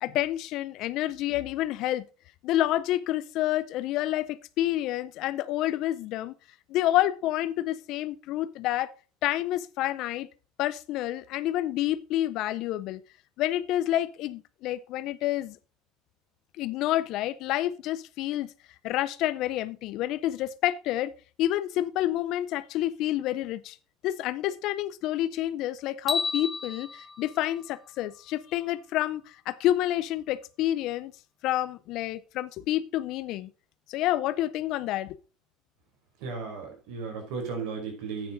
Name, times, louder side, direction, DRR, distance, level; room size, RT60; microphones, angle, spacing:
voice 1, 0.0-2.0 2.4-6.3 6.7-8.9 9.2-10.3 10.6-13.0 13.4-15.6 16.6-18.5 18.8-21.1 21.4-23.8 24.0-31.1 31.4-33.5 33.9-35.2, left 14 dB, 50° left, 0.5 m, -28 dB
sound 1, 26.1-28.3, left 4 dB, 10° left, 1.2 m, -33 dB
voice 2, 36.2-38.3, right 5 dB, 70° right, 5.0 m, -35 dB
11.0 x 8.9 x 3.9 m
cardioid pair, 165°, 0 cm